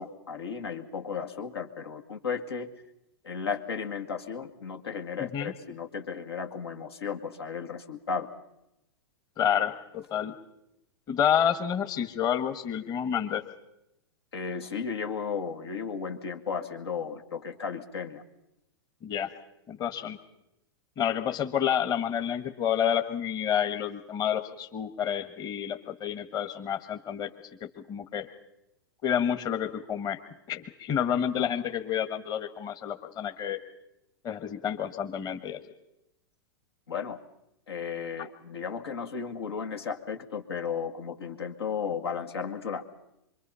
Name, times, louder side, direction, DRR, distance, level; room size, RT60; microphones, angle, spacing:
voice 1, 0.0-2.7 3.2-8.3 14.3-18.2 36.9-37.2 37.7-42.8, left 6 dB, 75° left, 4 dB, 2.1 m, -34 dB
voice 2, 9.4-10.3 11.1-13.5 19.0-19.3 19.7-20.2 21.0-27.3 27.6-28.3 29.0-30.2 30.5-33.6 34.2-35.6 38.2-38.3, left 9 dB, 30° left, 7 dB, 1.5 m, -29 dB
25.5 x 23.0 x 5.7 m, 0.87 s
hypercardioid pair, 105°, 13 cm